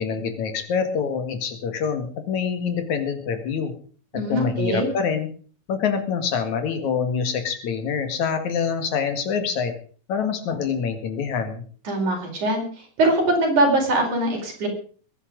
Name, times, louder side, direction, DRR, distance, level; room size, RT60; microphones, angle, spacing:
voice 1, 0.0-3.7 4.3-5.3 5.7-9.7 10.1-11.6, left 6 dB, 70° left, 7 dB, 3.4 m, -25 dB
voice 2, 4.1-4.9 11.9-12.6 13.0-14.7, right 2 dB, 75° right, 2 dB, 6.2 m, -22 dB
21.5 x 10.0 x 5.2 m, 0.43 s
omnidirectional pair, 3.5 m